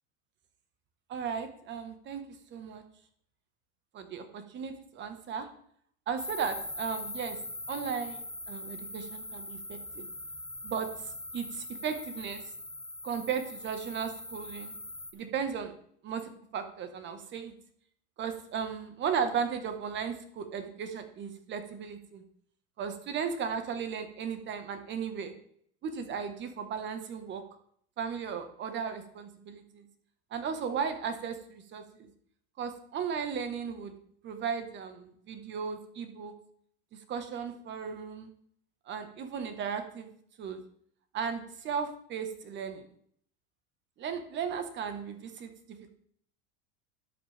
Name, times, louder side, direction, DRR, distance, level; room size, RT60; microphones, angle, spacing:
voice 1, 1.1-2.2 2.5-2.8 3.9-5.5 6.1-7.4 7.7-10.1 10.6-10.9 11.3-12.4 13.0-14.7 15.1-15.7 16.0-17.5 18.2-22.2 22.8-25.3 25.8-27.4 28.0-29.8 30.3-32.1 32.6-33.9 34.2-36.3 37.1-38.3 38.9-40.1 40.4-40.6 41.1-42.8 44.0-45.9, right 6 dB, 30° right, 8 dB, 1.4 m, -36 dB
sound 1, 6.2-15.1, left 1 dB, ahead, 1.0 m, -41 dB
12.5 x 8.6 x 3.5 m, 0.64 s
supercardioid pair, 135°, 36 cm